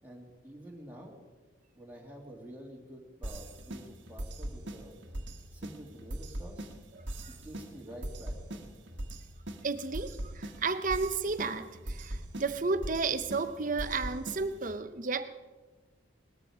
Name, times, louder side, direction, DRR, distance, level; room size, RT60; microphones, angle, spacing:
voice 1, 0.0-1.2 1.7-5.0 5.5-6.7 7.3-8.7, equal, 10° right, -2 dB, 2.3 m, -49 dB
sound 1, 3.2-14.7, right 1 dB, 60° right, 1.4 m, -41 dB
voice 2, 9.6-15.3, right 4 dB, 40° right, 11 dB, 0.8 m, -32 dB
19.0 x 13.5 x 4.9 m, 1.3 s
head